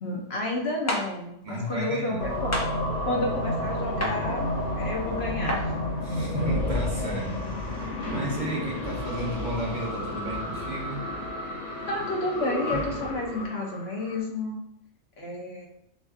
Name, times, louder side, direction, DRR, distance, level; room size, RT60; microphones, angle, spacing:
voice 1, 0.0-2.5 3.1-5.7 11.9-14.6 15.2-15.7, left 1 dB, 65° left, -1 dB, 1.0 m, -31 dB
sound 1, 0.9-1.0 2.5-2.7 4.0-4.2 5.5-5.6, left 1 dB, 30° left, 0.3 m, -27 dB
voice 2, 1.4-2.3 6.0-7.3 7.6-11.0, right 1 dB, 45° right, -3 dB, 1.0 m, -33 dB
sound 2, 2.2-14.2, left 1 dB, 90° left, 1.3 m, -31 dB
6.0 x 2.6 x 2.4 m, 0.75 s
omnidirectional pair, 1.2 m